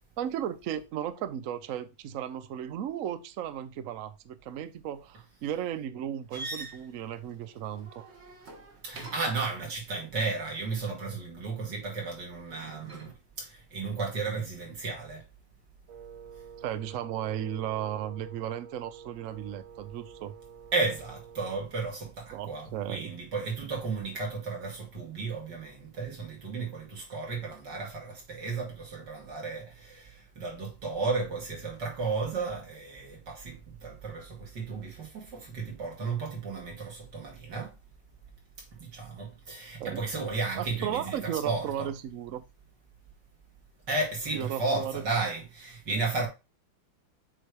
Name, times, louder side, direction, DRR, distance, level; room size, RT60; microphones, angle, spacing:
voice 1, 0.2-8.0 16.6-20.4 22.3-23.1 39.8-40.0 40.5-42.4 44.3-45.0 45.9-46.0, right 10 dB, 90° right, 0.7 m, -35 dB
sound 1, 6.3-9.5 12.5-13.1, right 2 dB, 35° right, 1.4 m, -44 dB
voice 2, 8.8-15.2 20.7-37.7 38.7-41.9 43.9-46.3, right 3 dB, 55° right, 2.9 m, -34 dB
Wind instrument woodwind instrument, 15.9-21.7, right 7 dB, 70° right, 1.6 m, -49 dB
7.4 x 3.4 x 4.6 m
omnidirectional pair, 2.3 m